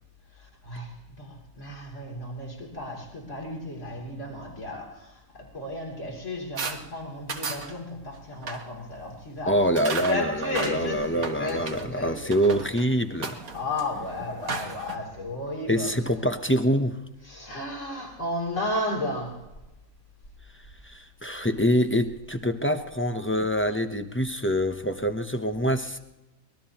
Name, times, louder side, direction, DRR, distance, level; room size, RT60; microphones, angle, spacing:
voice 1, 0.3-9.6 10.0-12.4 13.5-15.9 17.3-19.4, left 2 dB, 60° left, 3.5 m, -33 dB
sound 1, 6.6-6.8 7.3-7.7 8.3-8.6 9.8-11.9 12.3-12.8 13.2-14.9, right 4 dB, 80° right, 1.8 m, -35 dB
voice 2, 9.5-13.4 15.7-17.0 20.8-26.0, equal, 15° left, 0.5 m, -25 dB
24.0 x 20.0 x 3.0 m
omnidirectional pair, 1.4 m